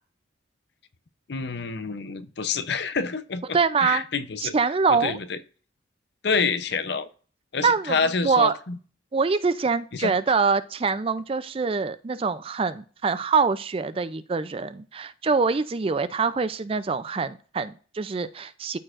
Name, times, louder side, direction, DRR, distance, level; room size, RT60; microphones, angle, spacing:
voice 1, 1.3-4.5 4.9-5.4 6.2-7.1 7.5-8.8 9.9-10.1, left 5 dB, 60° left, 12 dB, 0.6 m, -28 dB
voice 2, 3.5-4.0 4.4-5.2 7.6-8.5 9.1-18.8, right 5 dB, 30° right, 14 dB, 0.4 m, -24 dB
13.0 x 4.5 x 2.5 m, 0.40 s
head